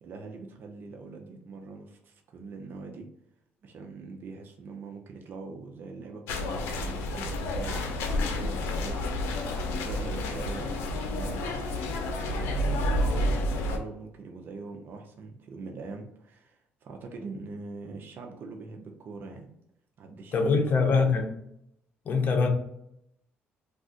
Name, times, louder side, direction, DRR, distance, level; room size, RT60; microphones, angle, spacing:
voice 1, 0.0-3.1 3.6-9.1 9.7-11.5 12.5-19.5 20.0-21.0, right 4 dB, 55° right, 2 dB, 0.5 m, -43 dB
sound 1, 6.3-13.8, left 1 dB, 85° left, 0.5 m, -30 dB
voice 2, 20.3-21.3 22.0-22.5, left 4 dB, 45° left, 3 dB, 0.7 m, -23 dB
2.4 x 2.4 x 3.7 m, 0.77 s
cardioid pair, 105°, 4 cm